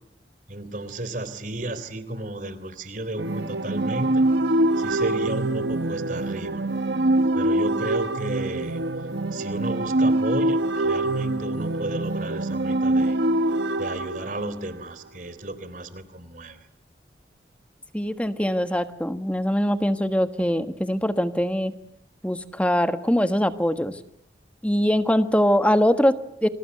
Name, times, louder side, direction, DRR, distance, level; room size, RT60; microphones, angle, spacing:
voice 1, 0.5-4.3 4.8-6.6 7.3-8.8 9.3-13.2 13.8-16.7, right 1 dB, 50° right, 13 dB, 3.6 m, -33 dB
sound 1, 3.2-14.9, right 1 dB, 85° right, 1.3 m, -24 dB
voice 2, 17.9-21.7 22.2-24.0 24.6-26.5, equal, 5° left, 9 dB, 1.4 m, -22 dB
29.0 x 26.0 x 8.0 m, 0.72 s
head